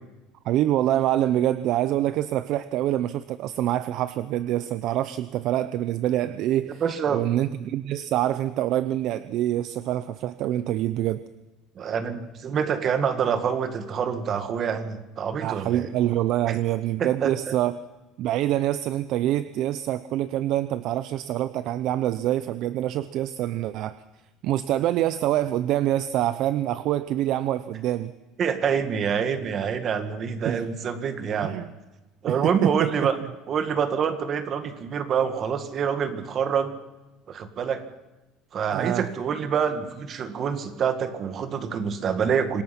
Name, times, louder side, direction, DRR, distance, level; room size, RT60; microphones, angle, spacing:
voice 1, 0.4-6.8 7.1-11.2 15.4-17.8 18.2-24.0 24.4-28.1 30.4-30.7 31.4-31.7 32.3-33.1 38.7-39.1, right 13 dB, 50° right, 14 dB, 0.7 m, -25 dB
voice 2, 6.8-7.2 11.8-15.9 16.5-16.6 17.0-17.3 28.4-31.6 32.2-33.2 33.5-36.7 37.3-37.8 38.5-42.6, right 7 dB, 30° right, 9 dB, 2.0 m, -26 dB
26.5 x 18.0 x 6.0 m, 1.1 s
cardioid pair, 165°, 0 cm